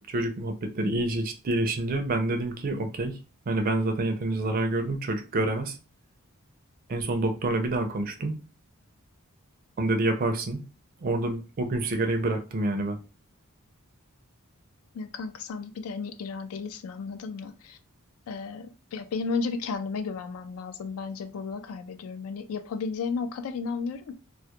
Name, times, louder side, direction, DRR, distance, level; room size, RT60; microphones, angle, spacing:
voice 1, 0.1-3.2 3.5-5.8 6.9-8.3 9.8-10.6 11.0-13.0, right 2 dB, 40° right, 0.4 m, -27 dB
voice 2, 14.9-17.8 18.3-24.1, left 4 dB, 70° left, 0.3 m, -33 dB
2.2 x 2.0 x 2.8 m
head